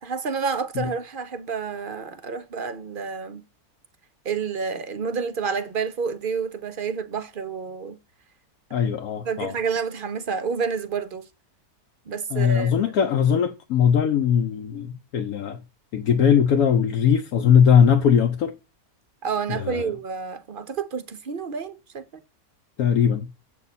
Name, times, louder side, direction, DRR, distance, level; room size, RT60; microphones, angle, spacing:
voice 1, 0.0-3.4 4.2-8.0 9.3-11.2 12.1-12.7 19.2-22.0, right 5 dB, 55° right, 0.6 m, -29 dB
voice 2, 8.7-9.5 12.3-15.6 15.9-18.5 19.5-19.9 22.8-23.3, left 7 dB, 80° left, 1.2 m, -20 dB
8.0 x 7.2 x 4.1 m
omnidirectional pair, 1.6 m